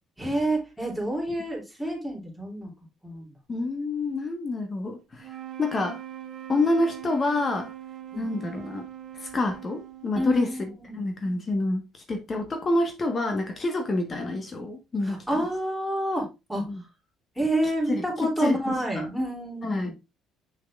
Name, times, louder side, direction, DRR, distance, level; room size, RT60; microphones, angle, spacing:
voice 1, 0.2-2.7 3.0-3.3 8.1-8.4 10.1-11.0 15.0-16.7 17.3-19.9, right 1 dB, ahead, 3.1 m, -29 dB
voice 2, 3.5-5.3 5.6-6.0 6.5-7.7 8.1-8.8 9.2-15.5 16.6-16.8 17.9-19.1 19.6-19.9, left 2 dB, 35° left, 1.3 m, -28 dB
sound 1, 5.2-10.6, right 11 dB, 55° right, 0.7 m, -41 dB
6.2 x 6.0 x 2.5 m
hypercardioid pair, 60°, 0 cm